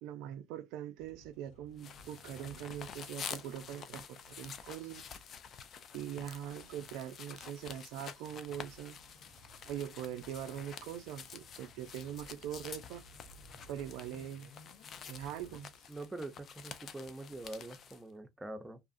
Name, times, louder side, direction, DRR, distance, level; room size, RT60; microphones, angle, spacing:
voice 1, 0.0-5.1 5.9-9.0 9.6-13.0 13.7-14.5 15.1-15.7, right 10 dB, 75° right, 0.3 m, -42 dB
sound 1, 1.0-6.8 7.3-16.0 16.7-17.0 17.4-17.6, equal, 75° left, 1.2 m, -60 dB
sound 2, 1.8-18.0, left 7 dB, 50° left, 0.5 m, -49 dB
voice 2, 15.9-18.8, right 2 dB, 15° right, 0.7 m, -44 dB
2.7 x 2.4 x 2.5 m
hypercardioid pair, 70°, 0 cm